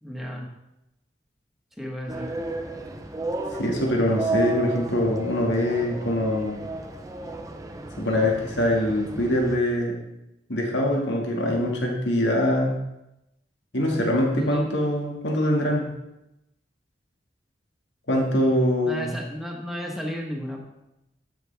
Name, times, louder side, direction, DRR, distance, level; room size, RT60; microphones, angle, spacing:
voice 1, 0.0-0.5 1.8-2.3 14.3-14.7 18.8-20.6, equal, ahead, -1 dB, 1.4 m, -33 dB
sound 1, 2.1-9.6, right 2 dB, 20° right, 0.7 m, -33 dB
voice 2, 3.6-6.6 8.0-10.0 10.5-12.8 13.7-15.9 18.1-19.1, left 1 dB, 90° left, -1 dB, 2.1 m, -23 dB
12.0 x 6.5 x 3.5 m, 0.89 s
head